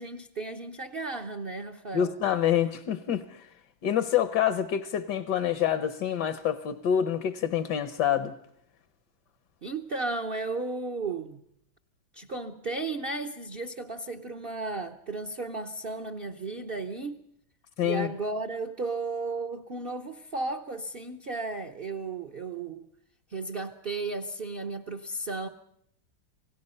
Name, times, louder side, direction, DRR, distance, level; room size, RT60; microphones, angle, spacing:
voice 1, 0.0-2.1 9.6-11.4 12.1-17.3 17.8-22.9 23.3-25.5, right 3 dB, 45° right, 4 dB, 0.8 m, -34 dB
voice 2, 1.9-3.5 3.8-8.3 17.8-18.1, left 9 dB, 65° left, 11 dB, 1.5 m, -27 dB
28.0 x 18.0 x 5.5 m, 0.72 s
omnidirectional pair, 2.1 m